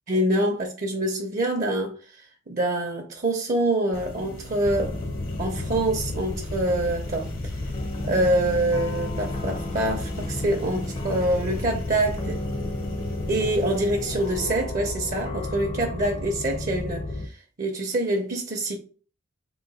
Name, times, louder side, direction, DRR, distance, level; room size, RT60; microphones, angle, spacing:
voice 1, 0.1-1.9 2.5-5.0 5.4-7.3 8.0-12.4 13.3-17.3 17.6-18.8, right 1 dB, 40° right, 0.6 m, -25 dB
sound 1, 3.9-14.4, left 1 dB, 75° left, 1.1 m, -40 dB
sound 2, 4.6-17.3, left 2 dB, 30° left, 0.5 m, -32 dB
3.8 x 2.6 x 4.0 m
head